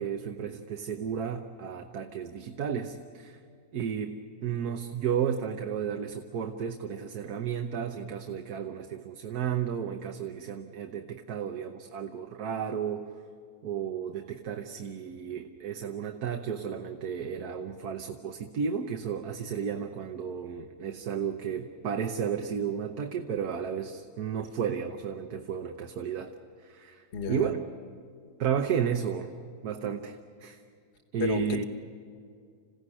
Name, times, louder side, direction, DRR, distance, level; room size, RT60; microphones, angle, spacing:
voice 1, 0.0-3.4 3.7-4.2 4.4-13.1 13.6-26.3 26.6-27.6 28.4-29.3 29.6-30.6 31.1-31.6, right 7 dB, 85° right, 5 dB, 1.5 m, -33 dB
voice 2, 27.1-27.5 31.2-31.6, left 6 dB, 50° left, 8 dB, 1.4 m, -32 dB
27.5 x 16.5 x 9.8 m, 2.2 s
omnidirectional pair, 1.6 m